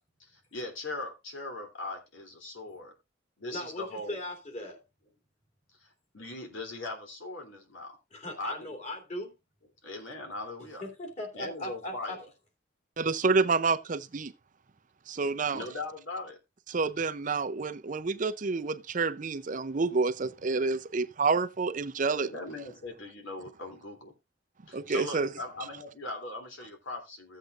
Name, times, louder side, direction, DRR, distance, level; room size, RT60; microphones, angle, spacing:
voice 1, 0.2-2.9 3.4-4.2 5.8-8.0 8.4-8.8 9.8-10.8 11.3-12.3 15.5-16.4 22.2-24.1 24.7-27.4, left 2 dB, 85° left, 3.1 m, -40 dB
voice 2, 3.5-4.8 8.2-9.3 10.8-12.2, left 1 dB, 40° left, 2.9 m, -38 dB
voice 3, 13.0-14.3 15.1-15.6 16.7-22.3 24.7-25.3, right 4 dB, 45° right, 0.5 m, -28 dB
15.5 x 8.1 x 2.5 m
head